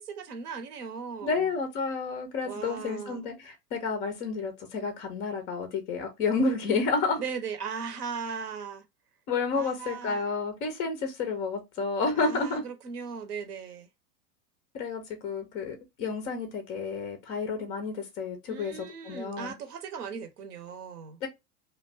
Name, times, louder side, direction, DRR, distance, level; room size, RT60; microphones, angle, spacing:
voice 1, 0.0-1.4 2.4-3.2 7.2-8.8 9.5-10.2 12.2-13.9 18.5-21.2, right 6 dB, 75° right, 0.8 m, -38 dB
voice 2, 1.2-7.2 9.3-12.6 14.7-18.7 19.0-19.5 21.2-21.3, left 4 dB, 20° left, 0.3 m, -30 dB
2.4 x 2.2 x 3.2 m
hypercardioid pair, 100°, 46 cm